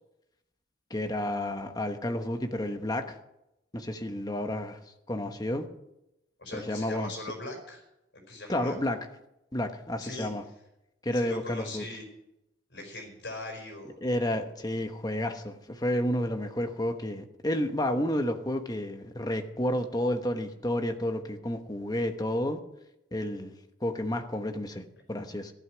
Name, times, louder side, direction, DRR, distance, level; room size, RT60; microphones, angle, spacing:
voice 1, 0.9-3.2 3.7-4.8 5.1-5.7 6.5-7.1 8.5-9.0 9.5-10.4 11.0-11.8 14.0-22.6 23.1-23.5 23.8-25.5, left 1 dB, 20° left, 1.1 m, -31 dB
voice 2, 6.4-7.8 8.1-8.7 10.0-10.3 11.1-12.1 12.7-13.9, left 2 dB, 60° left, 4.6 m, -40 dB
14.5 x 11.5 x 6.2 m
head